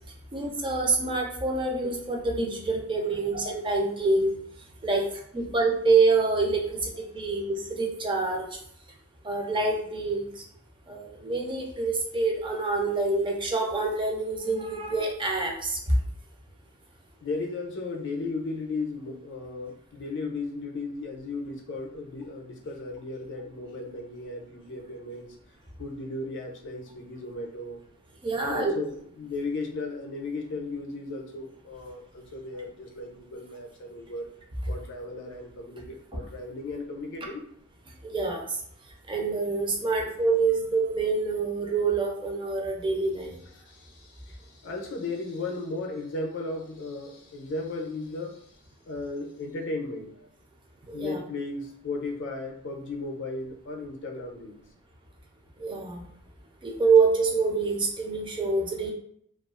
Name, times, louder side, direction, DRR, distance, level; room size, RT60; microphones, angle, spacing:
voice 1, 0.3-4.4 4.8-5.1 5.3-8.5 9.2-10.3 10.9-15.8 28.2-28.7 38.0-38.4 39.1-43.4 50.9-51.2 55.6-56.1 56.6-58.9, right 3 dB, 25° right, 1 dB, 0.4 m, -26 dB
voice 2, 17.2-25.4 25.8-27.8 28.4-34.3 34.7-37.4 39.8-39.9 43.6-48.6 48.9-50.3 50.9-54.6, left 3 dB, 55° left, 2 dB, 0.5 m, -35 dB
2.3 x 2.3 x 2.3 m, 0.67 s
head